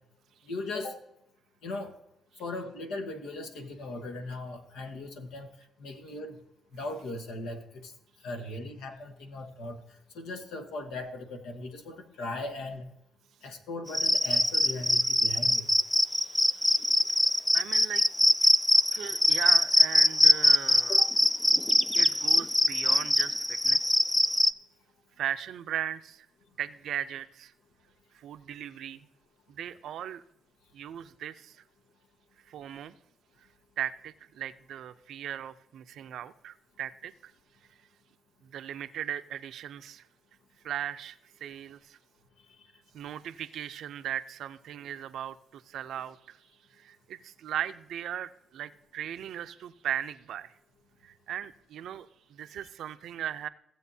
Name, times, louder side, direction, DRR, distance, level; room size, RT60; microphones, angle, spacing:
voice 1, 0.4-1.0 1.6-2.0 2.4-5.5 5.8-6.4 6.7-7.9 8.2-9.8 10.1-12.8 13.4-15.7 21.0-21.1, left 2 dB, 90° left, 6 dB, 1.3 m, -38 dB
Cricket, 13.9-24.5, left 1 dB, 5° left, 0.3 m, -23 dB
voice 2, 16.1-16.9 17.5-18.0 18.4-18.5 18.9-21.0 21.9-23.9 25.2-26.3 26.6-27.5 28.1-29.0 29.5-30.2 30.7-31.6 32.5-32.9 33.8-37.3 38.4-40.1 40.6-42.0 42.9-46.4 46.8-50.5 51.0-53.5, right 10 dB, 75° right, 11 dB, 0.5 m, -38 dB
16.0 x 7.7 x 2.8 m, 0.80 s
cardioid pair, 90°, 0 cm